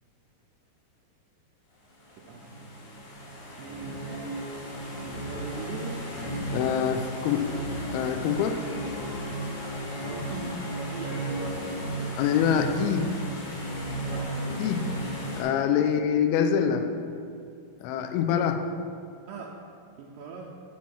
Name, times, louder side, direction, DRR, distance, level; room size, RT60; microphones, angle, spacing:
sound 1, 2.0-15.4, equal, 55° left, 3.1 m, -34 dB
voice 1, 2.2-2.7 3.6-4.6 5.1-6.1 10.0-11.9 14.0-14.5 19.3-19.7 20.0-20.4, right 4 dB, 90° right, -3 dB, 1.9 m, -40 dB
voice 2, 6.5-7.5 7.9-8.6 12.2-13.1 14.6-14.8 15.3-16.9 17.8-18.6, left 8 dB, 80° left, 7 dB, 2.3 m, -25 dB
9.2 x 4.2 x 5.7 m, 2.5 s
omnidirectional pair, 4.7 m